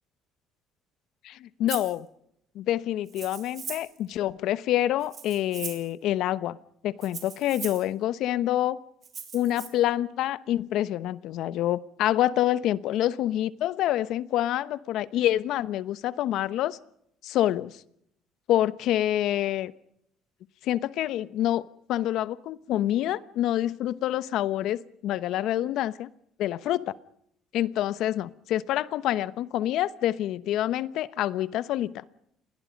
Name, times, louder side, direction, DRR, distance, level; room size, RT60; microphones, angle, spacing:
voice 1, 1.2-2.1 2.5-6.6 6.8-8.8 9.3-16.8 17.2-17.7 18.5-19.7 20.6-21.6 21.9-26.1 26.4-26.9 27.5-32.0, left 13 dB, 70° left, 16 dB, 0.9 m, -27 dB
Rattle (instrument), 1.7-1.9 3.1-4.0 5.0-5.9 7.0-7.9 9.0-9.7, right 6 dB, 40° right, 5.0 m, -39 dB
28.5 x 21.5 x 5.3 m, 0.73 s
cardioid pair, 110°, 0 cm